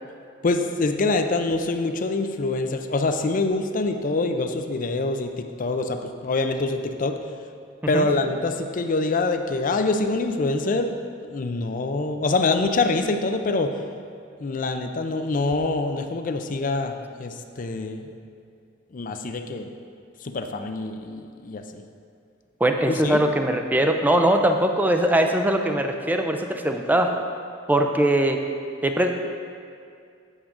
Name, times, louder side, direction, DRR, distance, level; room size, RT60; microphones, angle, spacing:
voice 1, 0.4-7.1 7.9-10.9 11.3-13.7 14.4-18.1 18.9-19.7 20.2-21.8 22.9-23.2, left 3 dB, 45° left, 6 dB, 0.5 m, -25 dB
voice 2, 22.6-27.1 27.7-28.4 28.8-29.1, right 1 dB, 10° right, 4 dB, 0.5 m, -21 dB
8.1 x 7.3 x 3.7 m, 2.4 s
head